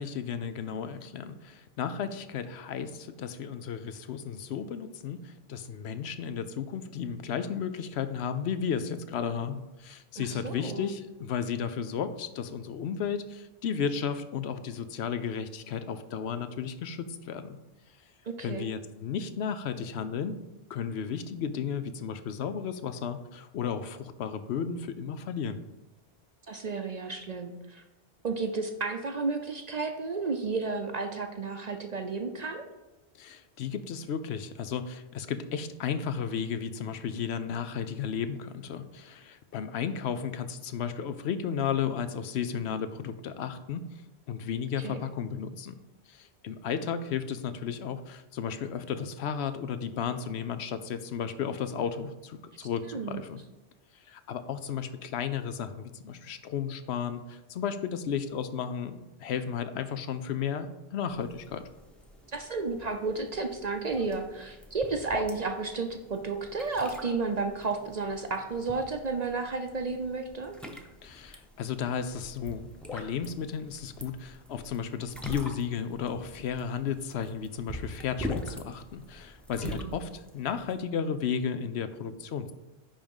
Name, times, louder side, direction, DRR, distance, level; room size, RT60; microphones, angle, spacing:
voice 1, 0.0-17.6 18.4-20.4 20.7-25.6 33.2-43.8 44.3-45.7 46.1-53.4 54.1-61.6 71.0-82.5, left 7 dB, 75° left, 10 dB, 0.9 m, -34 dB
voice 2, 10.2-10.9 18.3-18.7 26.5-27.8 28.2-32.6 44.8-45.0 52.6-53.2 62.3-70.6 79.6-79.9, right 4 dB, 45° right, 5 dB, 0.6 m, -32 dB
sound 1, 61.1-80.7, left 1 dB, ahead, 0.7 m, -44 dB
10.0 x 3.6 x 5.4 m, 1.1 s
omnidirectional pair, 1.1 m